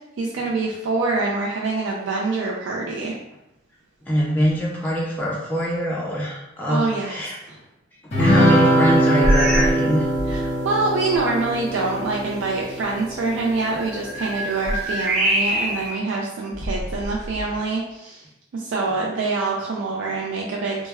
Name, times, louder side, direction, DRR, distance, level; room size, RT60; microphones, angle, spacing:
voice 1, 0.2-3.2 6.7-7.6 10.3-18.3 18.5-20.9, right 3 dB, 75° right, -2 dB, 0.3 m, -25 dB
voice 2, 4.1-7.3 8.2-10.1, equal, 10° left, -5 dB, 0.4 m, -24 dB
sound 1, 8.1-13.8, right 1 dB, 35° left, 0.8 m, -21 dB
sound 2, 9.2-9.9 10.1-10.5 11.2-11.3 13.6-16.0 16.5-17.5, right 1 dB, 55° right, 0.7 m, -24 dB
2.1 x 2.1 x 3.3 m, 0.89 s
head